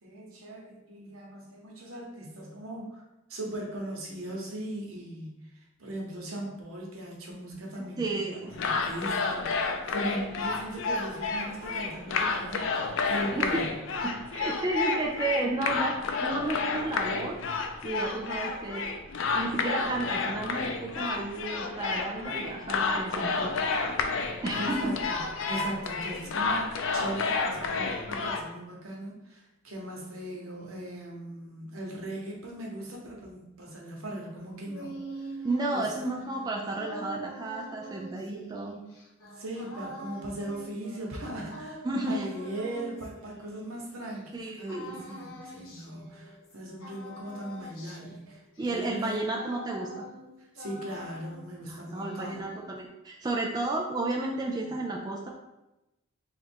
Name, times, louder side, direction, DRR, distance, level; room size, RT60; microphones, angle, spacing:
voice 1, 0.0-3.0 3.3-13.7 24.6-25.2 25.4-35.4 35.7-35.8 39.4-48.4 48.7-49.2 50.4-52.4 54.6-54.7, right 1 dB, 85° right, -1 dB, 1.0 m, -39 dB
voice 2, 7.8-8.5 13.3-13.6 14.0-17.4 17.8-18.9 19.3-23.5 24.4-25.0 35.4-38.8 41.8-42.3 44.3-45.0 48.6-50.0 51.7-55.3, right 2 dB, 20° right, -1 dB, 0.3 m, -32 dB
sound 1, 8.5-28.4, left 4 dB, 65° left, 0.4 m, -30 dB
sound 2, 34.4-44.2 44.7-46.6 46.8-50.3 50.6-51.6 51.9-52.9, equal, 80° left, 0.8 m, -45 dB
3.2 x 2.4 x 4.4 m, 0.96 s
head